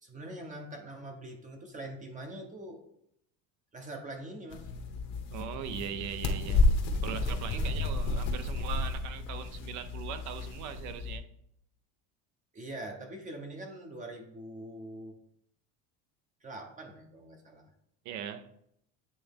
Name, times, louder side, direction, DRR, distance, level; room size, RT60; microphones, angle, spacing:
voice 1, 0.0-2.8 3.7-4.7 7.5-7.8 12.5-15.1 16.4-17.6, right 1 dB, 20° right, 2 dB, 0.8 m, -43 dB
sound 1, 4.5-11.2, left 3 dB, 50° left, 1.0 m, -31 dB
voice 2, 5.3-6.7 7.0-11.2 18.0-18.5, right 9 dB, 55° right, 11 dB, 0.6 m, -40 dB
8.6 x 3.4 x 3.5 m, 0.74 s
cardioid pair, 140°, 35 cm